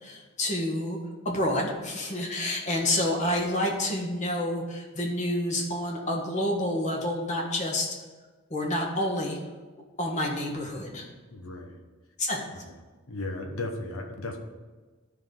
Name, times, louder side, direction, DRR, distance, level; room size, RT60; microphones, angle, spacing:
voice 1, 0.0-1.0 1.2-7.9 8.5-9.4 10.0-11.1 12.2-12.6, left 1 dB, 35° left, 0 dB, 1.3 m, -28 dB
voice 2, 11.3-11.8 12.6-12.7 13.1-14.4, left 2 dB, 75° left, 4 dB, 1.1 m, -35 dB
12.0 x 5.4 x 3.8 m, 1.3 s
head